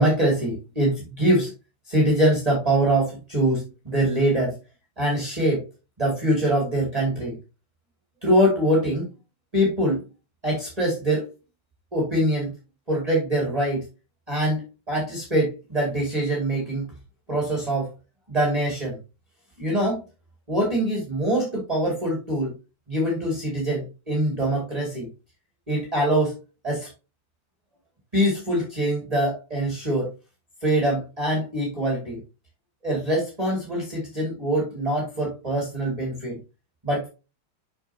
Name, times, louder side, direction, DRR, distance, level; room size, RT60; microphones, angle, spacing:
voice 1, 0.0-1.5 1.9-4.6 5.0-5.6 6.0-7.4 8.2-9.1 9.5-10.0 10.4-11.3 11.9-12.5 12.9-13.8 14.3-16.9 17.3-17.9 18.3-19.0 19.6-20.0 20.5-22.5 22.9-25.1 25.7-26.3 26.6-26.9 28.1-30.1 30.6-32.2 32.8-36.4 36.8-37.1, right 1 dB, 20° right, -3 dB, 2.3 m, -23 dB
6.7 x 6.5 x 2.8 m, 0.30 s
omnidirectional pair, 2.1 m